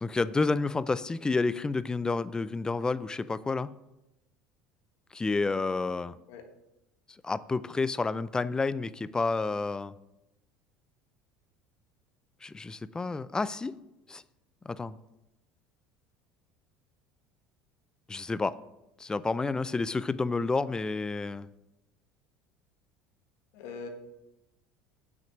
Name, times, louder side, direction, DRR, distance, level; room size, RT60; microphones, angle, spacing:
voice 1, 0.0-3.7 5.1-6.2 7.2-10.0 12.4-13.8 14.1-14.2 14.7-15.0 18.1-18.6 19.0-21.5, left 3 dB, 15° left, 17 dB, 0.4 m, -30 dB
voice 2, 23.5-23.9, left 5 dB, 70° left, 5 dB, 1.4 m, -41 dB
7.7 x 6.1 x 6.0 m, 0.92 s
hypercardioid pair, 80°, 4 cm